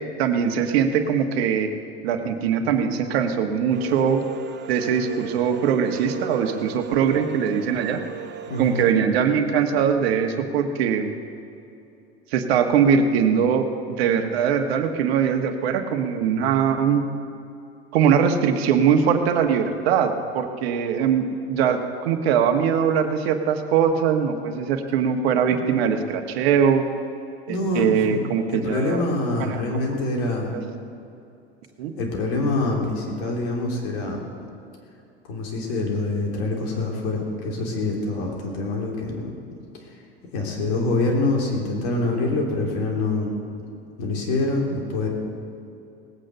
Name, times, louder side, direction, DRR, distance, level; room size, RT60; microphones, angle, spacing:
voice 1, 0.2-1.7 2.0-4.2 4.7-8.0 8.6-11.1 12.3-17.0 17.9-26.9 27.5-29.0 29.5-29.6 31.8-31.9, right 7 dB, 70° right, 6 dB, 1.4 m, -21 dB
sound 1, 3.7-8.9, right 11 dB, 35° right, 0.9 m, -37 dB
voice 2, 8.5-8.9 25.5-25.6 27.5-30.5 32.0-34.2 35.2-39.3 39.8-40.0 40.3-43.3 44.0-45.1, left 2 dB, 65° left, 0 dB, 3.5 m, -25 dB
19.0 x 8.8 x 6.6 m, 2.7 s
hypercardioid pair, 85°, 32 cm